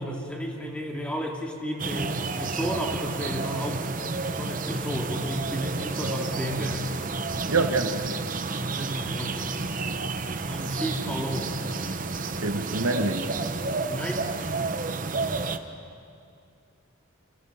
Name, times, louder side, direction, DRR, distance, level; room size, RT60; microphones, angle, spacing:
voice 1, 0.0-3.9 4.4-7.0 8.7-9.5 10.5-11.7 13.9-14.2, equal, 5° left, 0 dB, 2.4 m, -32 dB
sound 1, 1.8-15.6, right 3 dB, 40° right, 0.9 m, -31 dB
voice 2, 7.5-8.2 12.4-13.3, right 3 dB, 80° right, 7 dB, 1.4 m, -26 dB
28.5 x 26.5 x 5.6 m, 2.5 s
head